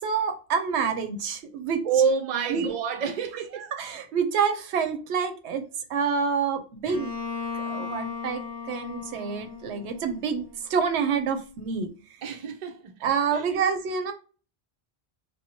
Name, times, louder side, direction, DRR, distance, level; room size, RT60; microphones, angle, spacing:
voice 1, 0.0-1.8 2.5-2.7 3.6-5.6 5.9-7.1 7.6-11.9 13.0-14.1, right 6 dB, 85° right, 0.8 m, -27 dB
voice 2, 1.8-3.6 12.2-12.9 13.3-13.5, right 6 dB, 55° right, 0.5 m, -27 dB
Bowed string instrument, 6.9-10.6, left 5 dB, 30° left, 0.4 m, -36 dB
2.7 x 2.1 x 2.8 m
omnidirectional pair, 1.1 m